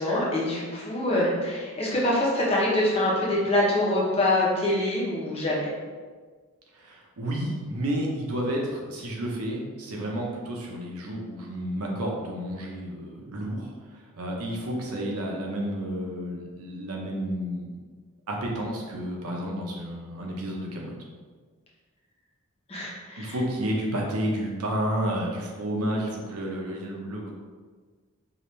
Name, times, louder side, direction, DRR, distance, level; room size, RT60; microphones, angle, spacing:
voice 1, 0.0-5.7 22.7-23.3, left 1 dB, 25° left, -5 dB, 0.9 m, -25 dB
voice 2, 6.7-13.7 14.2-17.7 18.3-20.9 23.2-27.3, equal, 90° right, -1 dB, 0.9 m, -31 dB
4.9 x 2.6 x 3.2 m, 1.5 s
head